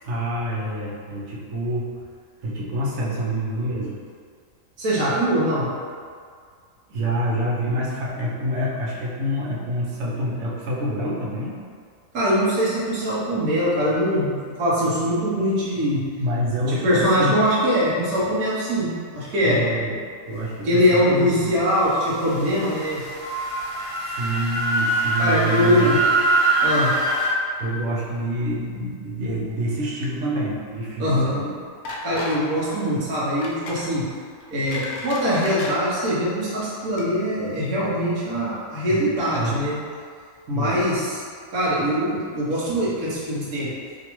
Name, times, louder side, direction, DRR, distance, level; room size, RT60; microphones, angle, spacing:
voice 1, 0.0-1.9 2.4-4.0 6.9-11.6 16.2-17.3 19.4-20.0 20.3-21.3 24.0-26.0 27.6-31.5 38.9-39.7 40.5-40.8, right 1 dB, 70° right, -5 dB, 1.2 m, -27 dB
voice 2, 4.8-5.6 12.1-16.1 16.7-19.6 20.6-23.1 25.2-26.0 26.6-27.0 31.0-31.4 32.0-34.1 34.5-39.8 40.5-41.2 41.5-43.7, equal, 85° right, -8 dB, 1.4 m, -22 dB
sound 1, 22.2-27.3, right 2 dB, 25° left, 1.0 m, -23 dB
sound 2, 31.8-32.4 32.7-32.9 33.4-33.9 34.4-35.7 36.5-36.7 37.0-37.1, left 2 dB, 65° left, 0.9 m, -34 dB
5.1 x 2.5 x 3.0 m, 2.1 s
omnidirectional pair, 1.4 m